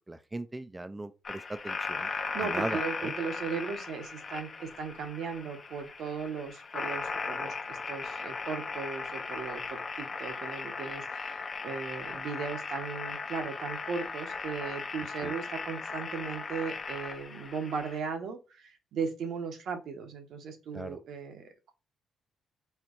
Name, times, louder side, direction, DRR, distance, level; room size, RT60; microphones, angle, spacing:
voice 1, 0.1-2.1 2.4-3.1 15.2-15.3 20.7-21.0, right 2 dB, 15° right, 0.3 m, -38 dB
sound 1, 1.2-18.0, left 4 dB, 40° left, 0.6 m, -37 dB
voice 2, 2.0-21.7, right 5 dB, 70° right, 0.9 m, -37 dB
4.4 x 2.3 x 3.8 m
cardioid pair, 90°, 0 cm